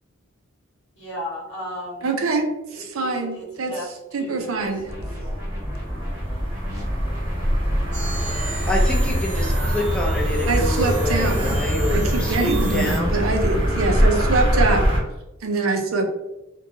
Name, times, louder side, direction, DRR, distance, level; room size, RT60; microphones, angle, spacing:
voice 1, 1.0-2.1 2.7-5.3, left 1 dB, 60° left, -6 dB, 1.1 m, -36 dB
voice 2, 2.0-3.7 4.1-4.9 10.5-11.6 11.9-14.9 15.4-16.1, right 3 dB, 85° right, 3 dB, 0.5 m, -24 dB
sound 1, 4.7-15.0, equal, 25° left, 1.0 m, -23 dB
sound 2, 4.9-8.3 10.5-14.3, equal, 15° right, 1.2 m, -32 dB
sound 3, 7.9-13.0, right 2 dB, 40° right, 0.7 m, -33 dB
voice 3, 8.7-13.2, left 1 dB, 5° left, -2 dB, 0.5 m, -27 dB
2.6 x 2.2 x 2.7 m, 0.95 s
head